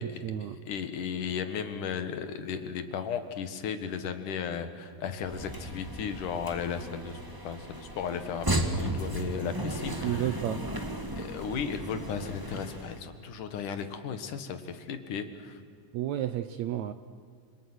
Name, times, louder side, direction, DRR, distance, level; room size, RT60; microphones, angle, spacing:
voice 1, 0.0-0.6 10.0-10.6 15.9-16.9, right 11 dB, 75° right, 11 dB, 1.7 m, -31 dB
voice 2, 0.7-10.3 11.2-15.6, left 7 dB, 70° left, 9 dB, 3.1 m, -35 dB
sound 1, 5.2-13.0, right 1 dB, 10° right, 1.3 m, -35 dB
29.5 x 27.0 x 6.3 m, 2.2 s
omnidirectional pair, 4.0 m